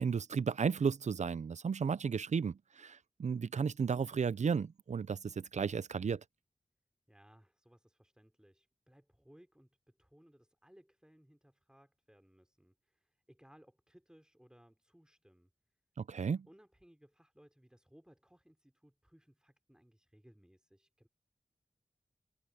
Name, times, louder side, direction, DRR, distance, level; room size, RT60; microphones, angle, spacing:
voice 1, 0.0-6.2 16.0-16.5, right 6 dB, 65° right, 0.5 m, -34 dB
voice 2, 7.1-15.5 16.5-21.1, equal, 5° right, 3.9 m, -64 dB
cardioid pair, 50°, 13 cm